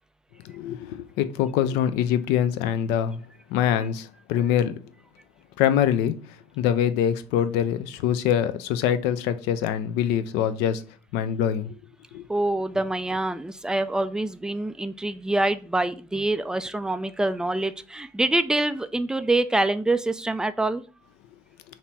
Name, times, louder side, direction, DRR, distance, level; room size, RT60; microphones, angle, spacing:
voice 1, 0.4-3.2 3.5-4.8 5.6-6.2 6.6-10.8 11.1-11.8 12.1-12.2, left 9 dB, 60° left, 0.5 m, -24 dB
voice 2, 12.3-20.8, right 2 dB, 5° right, 0.3 m, -25 dB
3.9 x 3.0 x 4.5 m
figure-of-eight pair, 50°, 20 cm